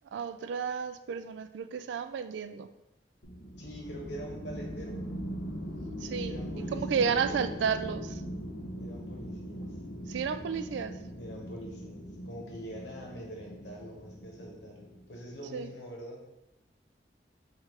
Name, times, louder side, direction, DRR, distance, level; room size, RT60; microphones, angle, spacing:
voice 1, 0.1-2.7 6.0-6.4 6.7-8.2 10.1-10.9 15.5-15.7, right 6 dB, 90° right, 11 dB, 0.3 m, -32 dB
sound 1, 3.2-15.3, equal, 70° left, 0.7 m, -40 dB
voice 2, 3.6-5.0 6.2-7.4 8.8-9.6 11.2-16.2, equal, 85° left, -1 dB, 1.1 m, -44 dB
3.7 x 2.9 x 4.5 m, 0.94 s
head